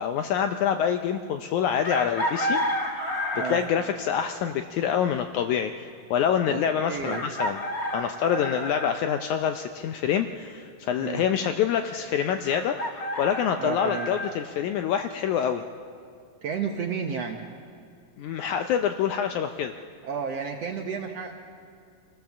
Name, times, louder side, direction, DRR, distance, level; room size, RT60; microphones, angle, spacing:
voice 1, 0.0-3.2 3.5-7.6 7.9-15.6 18.2-19.7, left 8 dB, 80° left, 7 dB, 1.8 m, -26 dB
Chicken rooster, 1.8-3.8 5.5-5.6 7.0-9.0 12.4-14.3, equal, 35° left, 1.6 m, -30 dB
voice 2, 6.5-7.3 11.0-11.2 13.6-14.1 16.4-17.5 20.0-21.3, right 6 dB, 70° right, 2 dB, 1.6 m, -32 dB
25.5 x 15.5 x 7.1 m, 2.4 s
omnidirectional pair, 4.0 m